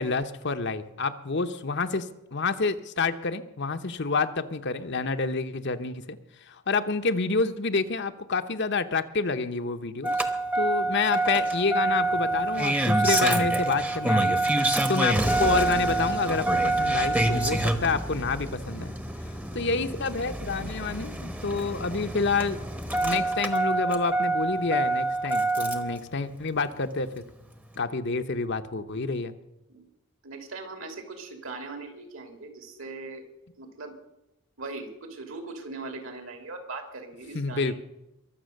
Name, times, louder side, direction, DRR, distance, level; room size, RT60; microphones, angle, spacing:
voice 1, 0.0-6.2 6.5-10.1 10.5-14.4 14.9-18.9 19.5-22.6 23.0-27.2 27.8-29.3 37.3-37.7, left 4 dB, 55° left, 9 dB, 0.9 m, -28 dB
Engine starting, 10.0-26.0 27.2-27.3, right 2 dB, 5° right, 1.0 m, -26 dB
voice 2, 30.2-33.2 33.6-34.0 34.6-37.7, right 3 dB, 65° right, 5 dB, 3.0 m, -40 dB
22.5 x 7.6 x 6.5 m, 0.90 s
head